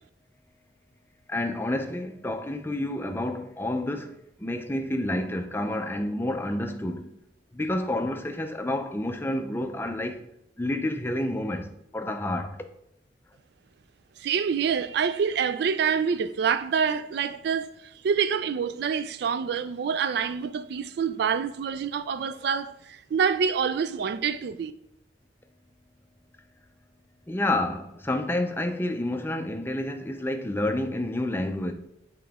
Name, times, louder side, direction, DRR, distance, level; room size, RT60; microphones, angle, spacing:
voice 1, 1.3-7.1 7.5-10.2 10.6-12.6 27.3-31.7, left 1 dB, 10° left, 0.5 m, -29 dB
voice 2, 14.2-17.7 18.0-24.7, right 6 dB, 60° right, 0.3 m, -26 dB
7.9 x 3.7 x 3.5 m
head